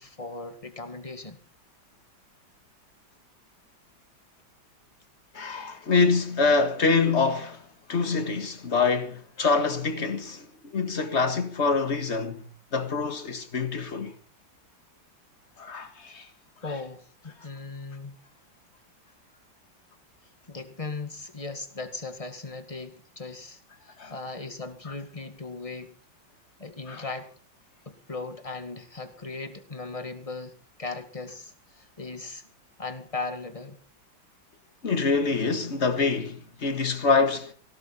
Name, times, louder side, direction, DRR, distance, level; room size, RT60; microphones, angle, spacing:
voice 1, 0.0-1.4 16.6-18.2 20.5-26.0 26.6-27.3 27.9-32.4 32.8-33.8, left 3 dB, 15° left, 2.0 m, -38 dB
voice 2, 5.3-7.6 7.9-14.1 15.6-16.3 24.0-24.1 26.9-27.0 34.8-37.5, left 4 dB, 35° left, 2.0 m, -25 dB
19.0 x 16.0 x 4.3 m
omnidirectional pair, 2.1 m